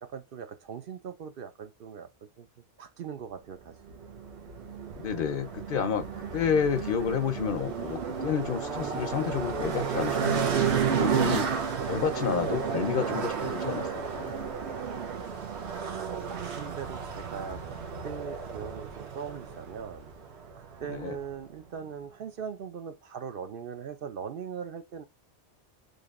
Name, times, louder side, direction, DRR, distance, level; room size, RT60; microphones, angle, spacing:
voice 1, 0.0-2.5 2.8-4.0 15.8-20.1 20.6-25.0, right 7 dB, 60° right, 0.7 m, -40 dB
sound 1, 3.9-21.3, right 6 dB, 85° right, 1.2 m, -32 dB
voice 2, 5.0-11.5 11.9-14.3 20.9-21.2, left 7 dB, 60° left, 0.7 m, -30 dB
6.4 x 2.9 x 2.4 m
omnidirectional pair, 1.1 m